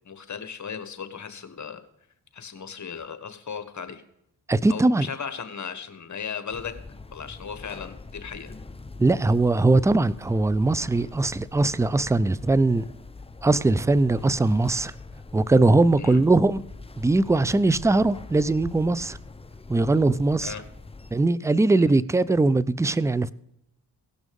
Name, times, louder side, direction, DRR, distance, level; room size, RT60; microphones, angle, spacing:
voice 1, 0.0-1.8 2.3-4.0 4.7-6.7 7.1-8.5 16.0-16.2 20.4-20.6 21.7-21.9, left 6 dB, 45° left, 1.4 m, -36 dB
voice 2, 4.5-5.1 9.0-12.9 13.4-14.9 15.3-16.6 17.0-19.2 19.7-20.5 21.1-23.3, right 2 dB, 10° right, 0.4 m, -21 dB
sound 1, 6.5-21.2, left 3 dB, 15° left, 0.8 m, -43 dB
17.0 x 6.1 x 5.3 m
supercardioid pair, 50°, 41 cm